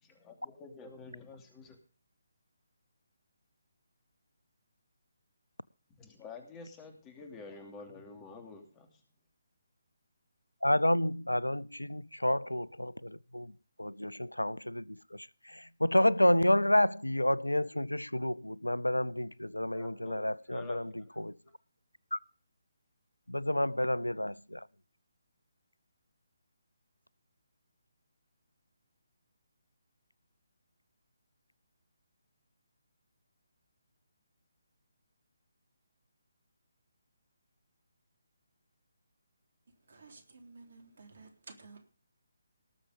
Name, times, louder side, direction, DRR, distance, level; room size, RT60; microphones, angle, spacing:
voice 1, 0.0-1.8 5.9-9.0 19.7-20.8, left 4 dB, 15° left, 2.9 m, -49 dB
voice 2, 10.6-13.5 13.8-21.4 22.1-22.2 23.3-24.7, left 1 dB, 90° left, 0.5 m, -30 dB
voice 3, 39.8-41.9, right 3 dB, 55° right, 3.6 m, -53 dB
18.5 x 7.0 x 5.1 m
figure-of-eight pair, 145°, 0 cm